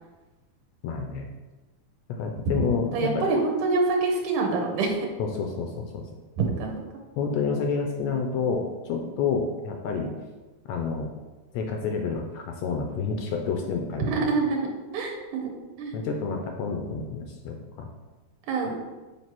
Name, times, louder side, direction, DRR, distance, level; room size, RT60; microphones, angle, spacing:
voice 1, 0.8-1.3 2.2-3.3 5.2-6.0 7.2-10.1 10.7-11.1 11.5-14.3 15.9-17.9, left 5 dB, 80° left, 3 dB, 1.6 m, -29 dB
voice 2, 2.5-5.0 6.4-6.7 14.1-15.5 15.8-15.9 18.5-18.8, right 3 dB, 75° right, 1 dB, 2.4 m, -26 dB
7.3 x 3.3 x 6.0 m, 1.2 s
omnidirectional pair, 3.7 m